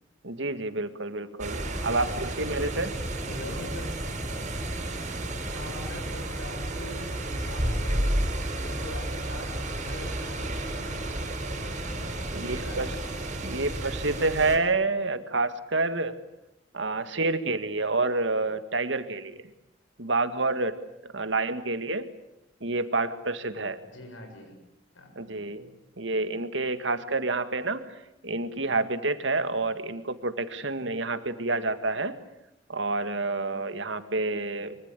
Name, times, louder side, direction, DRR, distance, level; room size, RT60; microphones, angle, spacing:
voice 1, 0.2-2.9 12.3-13.0 13.4-16.2 16.7-19.4 20.0-20.8 21.1-22.1 22.6-23.8 25.2-27.8 28.2-32.2 32.7-34.8, right 3 dB, 70° right, 10 dB, 1.9 m, -28 dB
sound 1, 1.4-14.6, right 1 dB, 40° right, 5.3 m, -32 dB
voice 2, 1.9-2.4 3.3-4.0 5.5-7.1 7.5-8.2 8.5-11.1 12.4-12.8 13.5-13.6 23.9-24.6 24.9-25.1, left 1 dB, 90° left, 4 dB, 7.6 m, -43 dB
24.0 x 24.0 x 8.4 m, 0.87 s
head